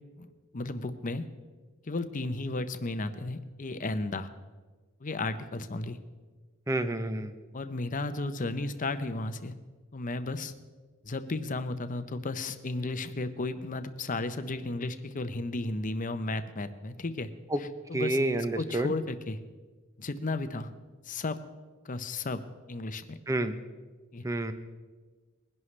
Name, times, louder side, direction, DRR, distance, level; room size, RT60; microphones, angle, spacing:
voice 1, 0.5-1.2 1.9-4.3 5.0-6.0 7.5-9.5 9.9-10.5 11.0-17.3 17.6-19.4 20.0-20.7 21.1-21.4 21.8-23.2 24.1-24.2, left 2 dB, 40° left, 10 dB, 0.7 m, -34 dB
voice 2, 6.7-7.3 17.5-17.6 17.9-18.9 23.3-23.6 24.2-24.5, right 1 dB, 15° right, 10 dB, 0.7 m, -29 dB
21.0 x 11.0 x 3.3 m, 1.3 s
head